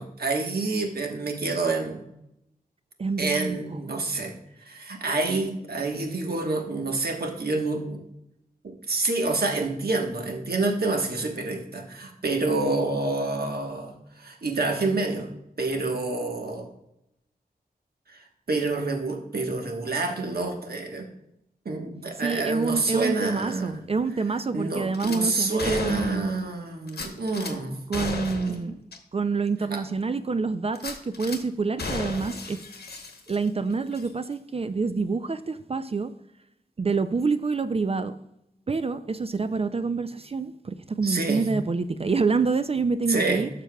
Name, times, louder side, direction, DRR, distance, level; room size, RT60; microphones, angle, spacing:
voice 1, 0.0-2.1 3.2-4.3 4.6-8.0 8.6-15.3 15.6-16.7 18.1-18.2 18.5-21.1 21.6-23.8 24.5-27.8 28.5-28.6 29.7-29.8 41.0-41.5 43.1-43.4, right 3 dB, 75° right, 1.2 m, -28 dB
voice 2, 3.0-3.8 22.2-26.2 27.9-28.8 29.1-32.6 33.3-36.1 36.8-38.2 38.7-43.5, right 4 dB, 40° right, 0.4 m, -27 dB
Gunshot gunfire / Glass, 24.9-25.2 25.6-26.4 26.9-27.5 27.9-28.6 28.9-29.0 29.5-29.6 30.7-31.4 31.8-33.6 33.9-34.1, left 3 dB, 85° left, 1.0 m, -34 dB
12.0 x 6.7 x 2.3 m
wide cardioid pair, 80°, 16 cm